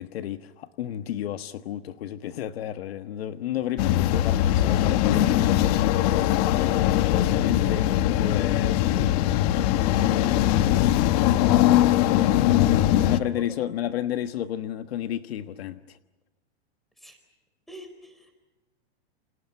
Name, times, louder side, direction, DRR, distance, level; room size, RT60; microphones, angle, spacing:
voice 1, 0.0-5.3 6.0-6.8 7.4-9.2 12.0-16.0, left 11 dB, 65° left, 10 dB, 1.4 m, -32 dB
sound 1, 3.8-13.2, left 12 dB, 35° left, 1.0 m, -21 dB
voice 2, 12.3-13.7 17.0-17.2 17.7-18.4, equal, ahead, 6 dB, 4.3 m, -46 dB
30.0 x 27.5 x 5.8 m, 1.1 s
supercardioid pair, 160°, 33 cm